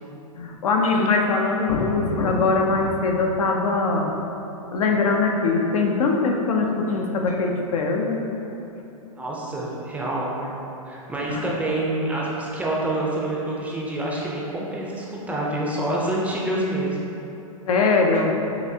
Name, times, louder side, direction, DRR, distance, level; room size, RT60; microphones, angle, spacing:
voice 1, 0.3-4.1 4.7-8.2 11.3-11.4 17.7-18.3, left 3 dB, 70° left, 1 dB, 0.6 m, -22 dB
voice 2, 9.2-10.3 10.9-16.9, right 1 dB, 5° right, -4 dB, 0.4 m, -27 dB
5.8 x 2.5 x 2.7 m, 2.9 s
hypercardioid pair, 120°, 19 cm